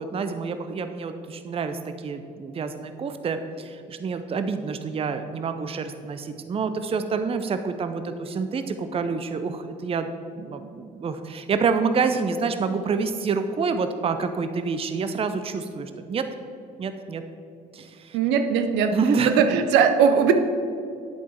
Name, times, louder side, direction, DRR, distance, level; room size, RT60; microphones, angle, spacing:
voice 1, 0.0-10.1 10.4-16.2 16.8-17.2 17.7-18.2 18.9-19.3, right 5 dB, 30° right, 9 dB, 0.7 m, -27 dB
voice 2, 18.1-19.0 19.2-20.3, right 7 dB, 60° right, 8 dB, 0.9 m, -19 dB
9.7 x 8.2 x 4.5 m, 2.5 s
figure-of-eight pair, 50°, 21 cm